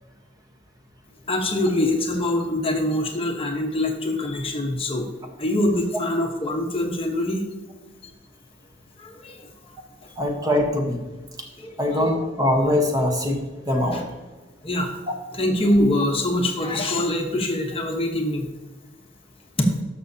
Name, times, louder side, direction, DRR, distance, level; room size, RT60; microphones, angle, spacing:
voice 1, 1.3-5.1 5.4-7.4 9.0-9.4 11.6-12.0 13.9-14.0 14.6-14.9 15.3-18.5 19.6-19.8, left 1 dB, 30° left, 2 dB, 1.1 m, -24 dB
voice 2, 10.2-11.0 11.8-13.4 13.7-14.0, left 1 dB, 20° right, 2 dB, 1.1 m, -22 dB
13.5 x 6.0 x 2.8 m, 1.3 s
head